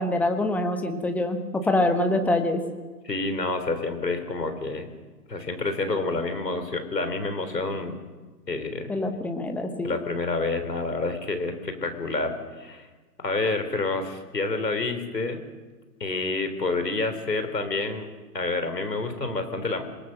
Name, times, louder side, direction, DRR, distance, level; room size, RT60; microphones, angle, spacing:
voice 1, 0.0-2.6 8.9-9.9, left 1 dB, 5° left, 6 dB, 1.1 m, -25 dB
voice 2, 3.0-4.9 5.3-8.0 8.5-8.9 9.8-12.9 13.2-15.4 16.0-18.1 18.3-19.9, left 3 dB, 80° left, 8 dB, 4.0 m, -28 dB
26.5 x 19.0 x 6.8 m, 1.3 s
figure-of-eight pair, 130°, 48 cm